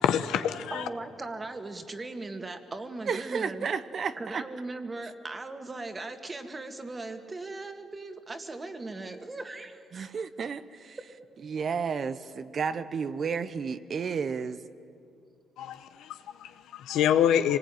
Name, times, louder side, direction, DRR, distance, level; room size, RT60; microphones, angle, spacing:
voice 1, 0.0-0.9 15.6-17.6, left 10 dB, 85° left, 1.0 m, -26 dB
voice 2, 0.7-3.7 4.2-9.8, right 2 dB, 25° right, 2.1 m, -38 dB
voice 3, 3.1-4.4 9.9-11.0 11.4-14.6, right 6 dB, 50° right, 0.9 m, -32 dB
25.0 x 19.0 x 9.2 m
cardioid pair, 90°, 0 cm